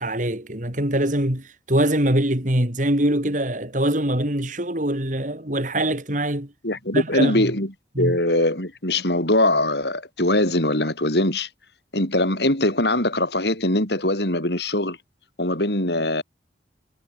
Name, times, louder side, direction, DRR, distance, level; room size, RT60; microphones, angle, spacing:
voice 1, 0.0-6.5 6.9-7.5 7.9-8.2, right 1 dB, 45° right, 4.4 m, -23 dB
voice 2, 6.6-7.7 8.0-11.5 11.9-15.0 15.4-16.2, left 1 dB, 70° left, 7.6 m, -22 dB
head